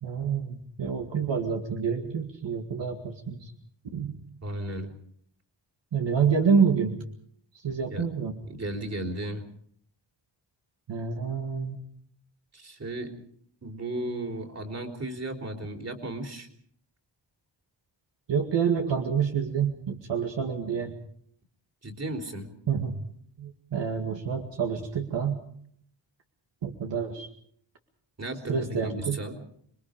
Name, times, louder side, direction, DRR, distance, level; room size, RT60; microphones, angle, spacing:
voice 1, 0.0-3.5 3.9-4.2 5.9-7.0 7.6-8.4 10.9-11.8 18.3-21.0 22.7-23.0 23.4-25.4 26.6-27.3 28.5-29.2, right 6 dB, 70° right, 2 dB, 2.2 m, -27 dB
voice 2, 4.4-4.9 7.9-8.1 8.5-9.4 12.5-13.2 13.6-16.5 21.8-22.5 28.2-29.3, right 1 dB, 35° right, 4 dB, 3.6 m, -35 dB
27.5 x 22.0 x 5.1 m, 0.64 s
wide cardioid pair, 125°, 44 cm